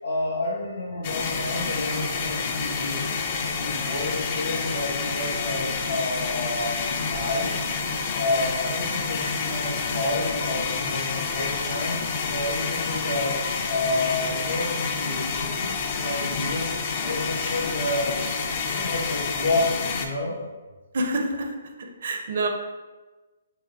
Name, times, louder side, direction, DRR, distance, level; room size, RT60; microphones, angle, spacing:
voice 1, 0.0-3.1 3.6-7.7 8.1-12.0 12.2-16.7 17.0-20.4, left 2 dB, 90° left, -5 dB, 1.3 m, -30 dB
sound 1, 1.0-20.1, left 5 dB, 40° left, 0.4 m, -28 dB
voice 2, 20.9-22.5, right 2 dB, 60° right, 3 dB, 0.5 m, -28 dB
4.8 x 2.2 x 2.5 m, 1.2 s
hypercardioid pair, 155°, 0 cm